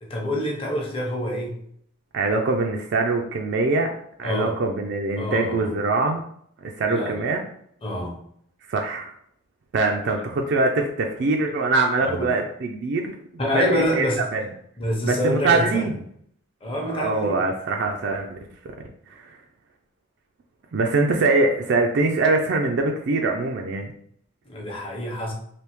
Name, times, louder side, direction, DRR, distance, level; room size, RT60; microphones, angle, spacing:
voice 1, 0.0-1.5 4.2-4.6 5.2-5.7 6.9-7.2 7.8-8.2 12.0-12.3 13.4-14.2 14.8-15.8 16.6-17.4 24.5-25.3, equal, 25° left, -1 dB, 0.8 m, -26 dB
voice 2, 2.1-3.9 4.2-6.2 6.6-7.4 8.7-9.1 9.7-13.2 13.5-14.1 14.3-14.4 15.0-16.0 16.9-18.4 19.1-19.3 20.7-23.9, right 3 dB, 55° right, 2 dB, 0.4 m, -23 dB
3.4 x 2.7 x 3.0 m, 0.67 s
head